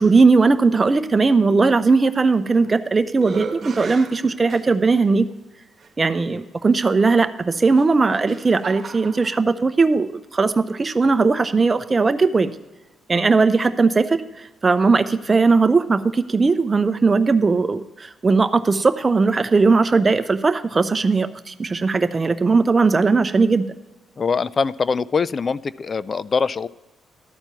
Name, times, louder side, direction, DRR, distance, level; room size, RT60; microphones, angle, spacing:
voice 1, 0.0-5.3 6.0-12.5 13.1-14.2 14.6-23.6, right 4 dB, 30° right, 10 dB, 0.6 m, -18 dB
sound 1, 2.3-2.8 3.2-5.0 5.8-5.9 7.7-9.4, right 5 dB, 45° right, 1.2 m, -35 dB
voice 2, 24.2-26.7, left 5 dB, 40° left, 18 dB, 0.3 m, -23 dB
12.5 x 4.4 x 6.8 m, 1.1 s
cardioid pair, 80°, 0 cm